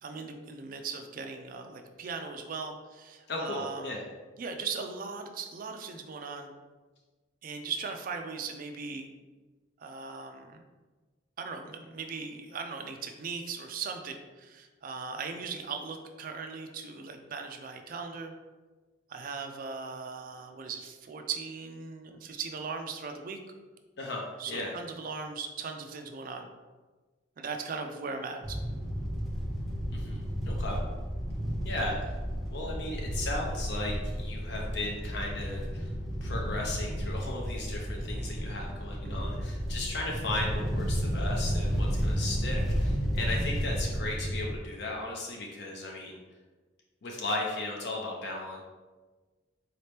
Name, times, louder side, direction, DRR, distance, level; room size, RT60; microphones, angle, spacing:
voice 1, 0.0-4.0 4.4-6.5 7.4-9.1 9.8-10.6 11.4-18.3 19.1-23.4 24.4-26.5 27.4-28.6 39.0-39.3, right 5 dB, 45° right, 5 dB, 0.4 m, -38 dB
voice 2, 3.3-4.0 24.0-24.7 29.9-30.8 31.6-32.1 32.5-35.9 36.2-46.2 47.0-48.6, left 2 dB, 60° left, -1 dB, 0.5 m, -36 dB
sound 1, 28.4-44.6, equal, ahead, 0.6 m, -32 dB
4.1 x 2.8 x 3.3 m, 1.3 s
head